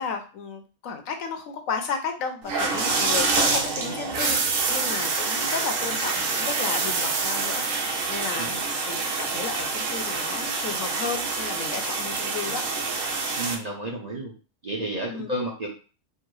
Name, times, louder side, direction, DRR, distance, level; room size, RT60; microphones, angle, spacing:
voice 1, 0.0-12.6 15.1-15.3, left 5 dB, 70° left, 6 dB, 1.0 m, -33 dB
sound 1, 2.4-13.6, right 4 dB, 70° right, 1.1 m, -26 dB
voice 2, 13.4-14.3 14.6-15.7, right 1 dB, 40° right, -2 dB, 0.6 m, -31 dB
4.5 x 2.0 x 4.6 m, 0.36 s
omnidirectional pair, 1.5 m